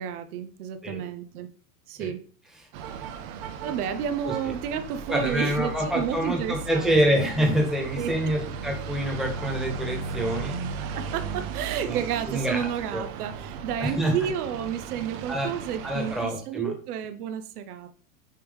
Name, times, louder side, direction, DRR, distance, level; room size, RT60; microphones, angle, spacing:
voice 1, 0.0-1.5 1.9-2.3 3.6-7.2 8.0-8.4 10.9-17.9, right 8 dB, 75° right, 8 dB, 0.8 m, -31 dB
sound 1, 2.7-16.3, right 5 dB, 40° right, 0.7 m, -36 dB
voice 2, 5.1-10.5 11.0-11.2 11.8-12.0 12.3-13.0 13.8-14.1 15.3-15.5 15.8-16.7, equal, ahead, 0 dB, 1.3 m, -26 dB
9.1 x 3.2 x 3.4 m, 0.43 s
supercardioid pair, 150°, 45 cm